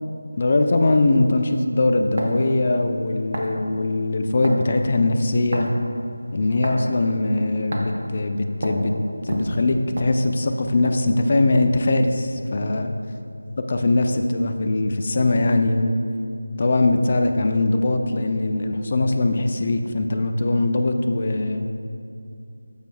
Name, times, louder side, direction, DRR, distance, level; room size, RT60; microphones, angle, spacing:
voice 1, 0.4-5.7 6.3-8.9 9.2-12.9 13.7-15.9 16.6-21.7, left 2 dB, 40° left, 5 dB, 0.5 m, -21 dB
sound 1, 2.2-2.4 3.3-3.6 4.4-4.7 5.5-5.8 6.6-6.8 7.7-8.0 8.6-8.8 9.3-10.5 10.8-11.0 11.5-11.8, right 1 dB, 45° right, 1.0 m, -29 dB
13.5 x 5.0 x 2.3 m, 2.6 s
figure-of-eight pair, 170°, 0 cm